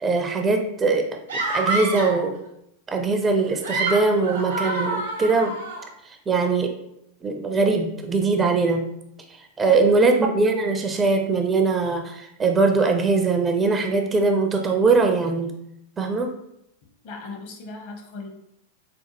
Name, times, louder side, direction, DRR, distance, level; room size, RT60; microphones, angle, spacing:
voice 1, 0.0-1.1 1.3-2.4 2.9-5.5 6.1-6.7 7.2-8.8 9.6-15.5 16.0-16.3, right 3 dB, 20° right, 4 dB, 0.4 m, -21 dB
sound 1, 1.3-2.3 3.4-5.8, right 2 dB, 70° right, 0.8 m, -27 dB
voice 2, 9.6-10.1 17.0-18.3, left 3 dB, 50° left, 2 dB, 0.8 m, -38 dB
4.3 x 2.2 x 2.8 m, 0.77 s
figure-of-eight pair, 90°, 0 cm